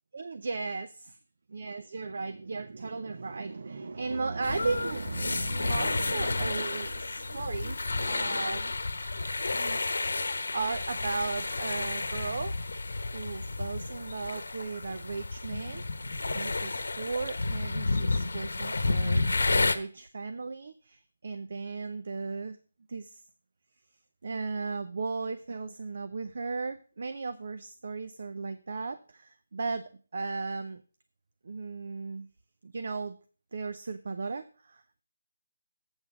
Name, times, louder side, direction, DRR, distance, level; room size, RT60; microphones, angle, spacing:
voice 1, 0.1-1.2 1.5-8.7 9.0-9.2 9.5-9.8 10.5-12.5 13.1-15.8 16.3-22.6 22.9-23.2 24.2-30.8 31.4-32.3 32.6-33.2 33.5-35.0, right 4 dB, 50° right, 10 dB, 0.6 m, -36 dB
sound 1, 4.4-19.8, left 3 dB, 75° left, 0.9 m, -31 dB
8.0 x 5.8 x 6.0 m, 0.40 s
hypercardioid pair, 175°, 0 cm